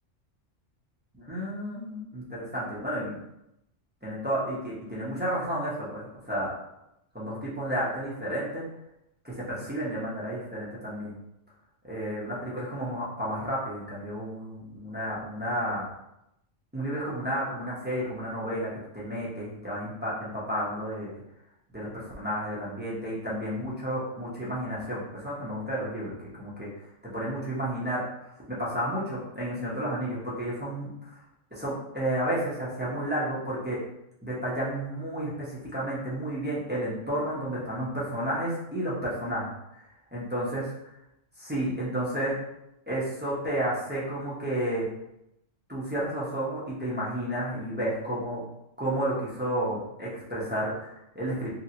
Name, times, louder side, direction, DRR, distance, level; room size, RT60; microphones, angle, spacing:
voice 1, 1.3-3.2 4.0-6.5 7.1-8.6 9.2-11.1 11.8-15.9 16.7-21.1 21.7-26.7 27.0-28.0 28.5-31.1 31.5-33.8 34.2-39.5 40.1-40.7 41.4-42.4 42.9-44.8 45.7-48.4 48.8-51.5, right 1 dB, 10° right, -8 dB, 0.8 m, -31 dB
3.0 x 2.8 x 2.8 m, 0.84 s
omnidirectional pair, 1.3 m